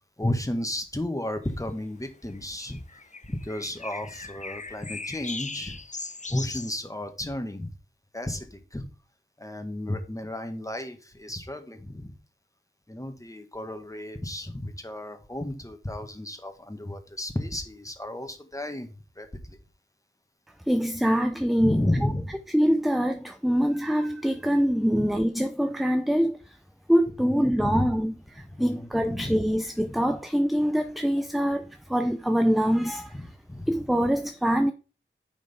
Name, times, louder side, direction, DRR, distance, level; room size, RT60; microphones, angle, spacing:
voice 1, 0.2-3.0 3.3-5.8 6.3-7.7 8.1-8.9 9.4-12.1 12.9-19.6 21.6-22.3 24.9-25.1 27.2-27.9 28.4-29.4 33.1-33.8, left 1 dB, 15° left, 1.6 m, -33 dB
sound 1, 1.5-1.6 2.3-6.7, left 3 dB, 35° left, 0.7 m, -39 dB
voice 2, 20.7-21.8 22.5-26.5 26.9-33.1 33.7-34.7, equal, ahead, 0.6 m, -24 dB
9.6 x 5.1 x 3.6 m
cardioid pair, 40°, 21 cm